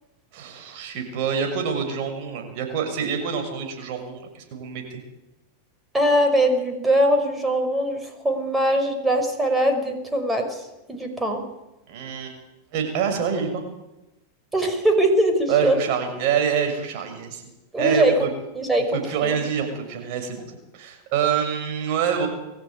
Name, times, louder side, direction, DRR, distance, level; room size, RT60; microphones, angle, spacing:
voice 1, 0.3-5.0 11.9-12.4 12.7-13.6 15.5-18.3 18.9-22.3, right 7 dB, 55° right, 5 dB, 6.5 m, -26 dB
voice 2, 5.9-11.4 14.5-15.8 17.7-18.3 18.6-19.4, right 1 dB, 10° right, 5 dB, 5.5 m, -21 dB
22.5 x 14.5 x 9.5 m, 0.96 s
hypercardioid pair, 105°, 0 cm